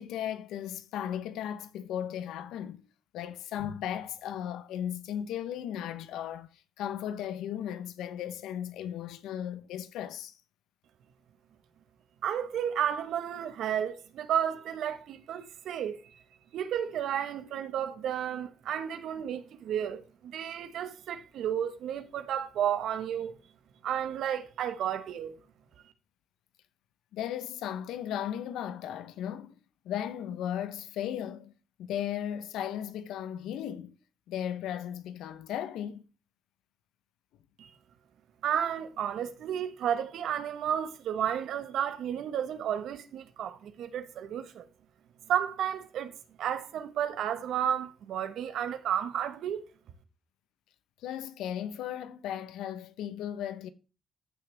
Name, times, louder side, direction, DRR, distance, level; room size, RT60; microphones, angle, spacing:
voice 1, 0.0-2.9 3.1-6.5 6.8-10.4 27.1-29.6 29.8-31.5 31.8-33.9 34.3-36.0 51.0-53.7, left 10 dB, 90° left, 0.8 m, -36 dB
voice 2, 12.2-16.2 16.5-23.4 23.8-25.3 37.6-37.7 38.4-44.6 45.3-46.1 46.4-49.6, right 9 dB, 75° right, 1.2 m, -32 dB
14.5 x 6.0 x 3.4 m
cardioid pair, 90°, 0 cm